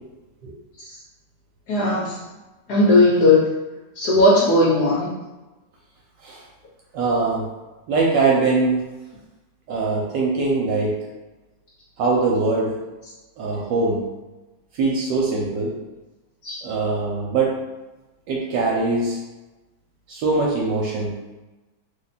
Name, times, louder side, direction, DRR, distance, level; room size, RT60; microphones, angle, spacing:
voice 1, 1.7-2.1 2.7-3.4 4.0-5.1 16.4-16.6, left 2 dB, 65° left, -6 dB, 1.1 m, -16 dB
voice 2, 6.9-7.4 7.9-8.8 9.7-10.9 12.0-12.7 13.4-14.0 14.7-15.7 16.6-17.5 18.3-19.2 20.1-21.1, right 3 dB, 80° right, -2 dB, 1.2 m, -22 dB
3.0 x 2.2 x 4.0 m, 1.1 s
omnidirectional pair, 2.0 m